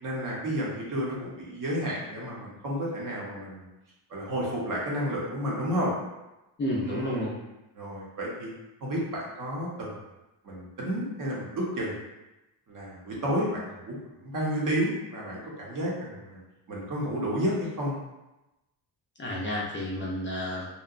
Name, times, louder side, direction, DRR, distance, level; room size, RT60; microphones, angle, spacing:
voice 1, 0.0-3.7 4.1-5.9 6.8-7.4 7.8-8.5 8.8-9.9 10.4-12.0 12.7-16.4 16.7-18.0, equal, 45° right, -4 dB, 0.8 m, -31 dB
voice 2, 6.6-7.3 19.2-20.7, left 1 dB, 30° left, -6 dB, 0.4 m, -31 dB
2.7 x 2.1 x 2.4 m, 0.99 s
cardioid pair, 130°, 43 cm